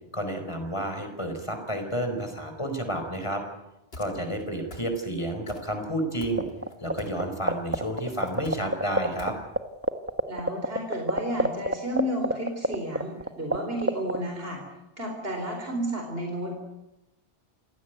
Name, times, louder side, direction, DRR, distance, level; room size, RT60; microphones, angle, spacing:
voice 1, 0.1-3.4 4.0-6.5 6.8-9.3, right 1 dB, 30° left, 6 dB, 4.8 m, -30 dB
sound 1, 3.9-4.4 4.7-5.2 5.5-5.9 6.2-7.2 7.5-9.3, left 1 dB, 65° left, 3.9 m, -46 dB
sound 2, 6.4-6.9 7.2-9.3 9.6-9.7 9.8-13.6 13.8-14.2, right 1 dB, 15° right, 1.4 m, -23 dB
voice 2, 10.3-14.6 15.0-16.6, right 1 dB, 65° right, 2 dB, 4.7 m, -32 dB
28.5 x 17.0 x 9.4 m, 0.93 s
omnidirectional pair, 1.1 m